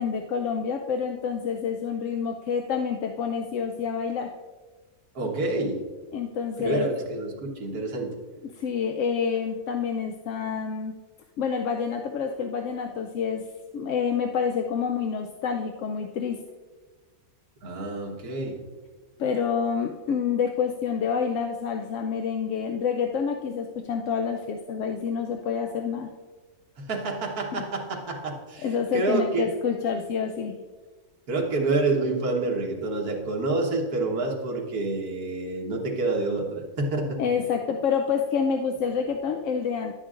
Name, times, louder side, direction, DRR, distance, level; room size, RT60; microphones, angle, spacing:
voice 1, 0.0-4.3 6.1-6.9 8.6-10.9 11.4-13.4 13.7-16.4 19.2-26.1 27.5-27.6 28.6-30.6 37.2-39.9, left 6 dB, 70° left, 4 dB, 0.8 m, -28 dB
voice 2, 5.2-5.8 6.6-8.1 17.6-18.6 26.8-29.5 31.3-37.2, right 3 dB, 75° right, -1 dB, 1.8 m, -28 dB
11.0 x 8.8 x 2.5 m, 1.4 s
omnidirectional pair, 1.6 m